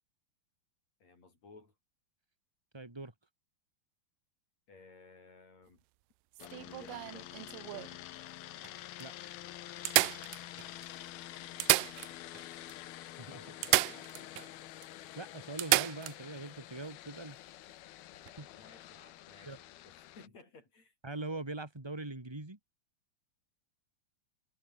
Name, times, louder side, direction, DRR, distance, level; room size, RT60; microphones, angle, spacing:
voice 1, 1.0-1.7 4.7-5.8 6.4-7.9 13.3-14.4 18.5-20.9, left 3 dB, 45° left, 7.0 m, -57 dB
voice 2, 2.7-3.1 9.0-9.1 13.2-13.4 15.2-17.4 18.4-18.5 19.5-19.6 21.0-22.6, right 2 dB, 10° right, 2.2 m, -42 dB
sound 1, 6.3-8.0 8.6-8.7 9.0-9.1 9.8-10.8 11.4-12.4 12.7-12.8 13.6-14.5 14.8-14.9 15.6-16.2 18.1-18.3, right 22 dB, 85° right, 2.0 m, -31 dB
sound 2, 6.4-20.3, left 14 dB, 85° left, 3.1 m, -48 dB
omnidirectional pair, 4.3 m